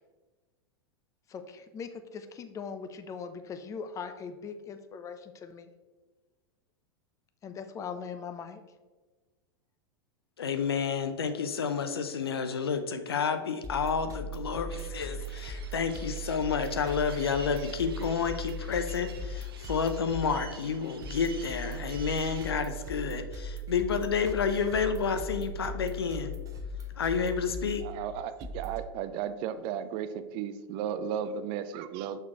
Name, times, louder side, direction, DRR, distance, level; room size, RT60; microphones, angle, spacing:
voice 1, 1.3-5.7 7.4-8.6, left 6 dB, 25° left, 8 dB, 0.6 m, -40 dB
voice 2, 10.4-26.3 27.0-27.8, left 6 dB, 75° left, 9 dB, 0.6 m, -30 dB
sound 1, 13.6-28.9, right 1 dB, 25° right, 0.9 m, -39 dB
sound 2, 14.7-22.5, right 6 dB, 70° right, 0.8 m, -49 dB
voice 3, 27.8-32.2, right 8 dB, 40° right, 12 dB, 0.4 m, -34 dB
6.5 x 5.9 x 3.0 m, 1.3 s
figure-of-eight pair, 90°, 13 cm